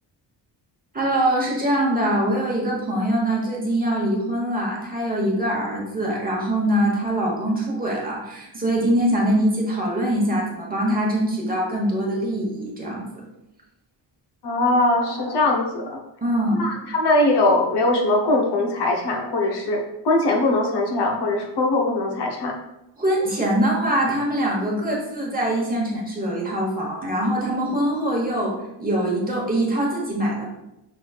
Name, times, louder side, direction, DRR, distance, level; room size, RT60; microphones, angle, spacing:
voice 1, 0.9-13.2 16.2-16.7 23.0-28.5 28.8-30.4, right 1 dB, 20° right, -3 dB, 1.1 m, -23 dB
voice 2, 14.4-16.0 16.6-22.6, left 2 dB, 65° left, 1 dB, 0.9 m, -21 dB
6.0 x 3.1 x 2.4 m, 0.88 s
wide cardioid pair, 140°, 43 cm